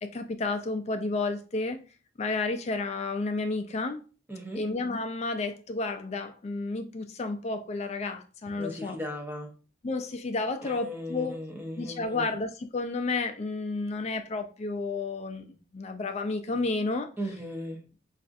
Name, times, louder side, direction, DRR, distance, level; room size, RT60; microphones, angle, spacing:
voice 1, 0.0-1.8 2.2-4.0 4.6-9.0 9.8-11.3 11.8-17.1, left 3 dB, 35° left, 0.4 m, -31 dB
voice 2, 4.3-4.6 8.6-9.5 10.6-12.3 17.2-17.8, equal, 10° right, 0.6 m, -37 dB
4.2 x 2.4 x 2.5 m
head